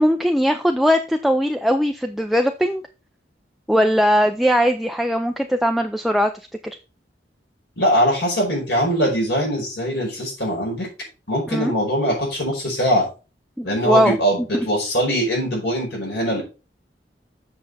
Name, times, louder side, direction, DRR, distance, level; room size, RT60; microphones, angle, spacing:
voice 1, 0.0-2.8 3.7-6.3 6.6-6.8 11.5-11.7 13.6-14.2 14.5-14.7, equal, ahead, 5 dB, 0.4 m, -19 dB
voice 2, 7.8-10.9 11.3-13.1 13.6-16.4, equal, 70° left, -1 dB, 5.1 m, -22 dB
7.9 x 5.8 x 4.1 m, 0.31 s
head